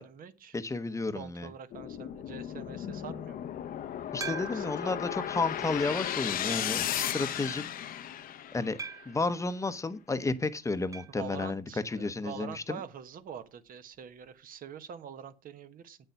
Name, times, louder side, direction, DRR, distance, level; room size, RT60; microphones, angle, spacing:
voice 1, 0.0-0.6 1.1-3.5 4.2-4.9 11.2-16.0, right 8 dB, 55° right, 1.2 m, -45 dB
voice 2, 0.5-1.5 4.1-7.6 8.5-8.8 9.1-12.8, left 3 dB, 20° left, 0.9 m, -32 dB
sound 1, 1.7-9.0, left 10 dB, 60° left, 0.8 m, -35 dB
sound 2, 4.2-4.9 5.5-5.6 6.5-6.9 8.8-9.3 10.9-11.2 11.5-11.6 11.8-11.9 13.9-14.0, right 5 dB, 20° right, 0.9 m, -41 dB
8.9 x 6.8 x 5.7 m
cardioid pair, 110°, 17 cm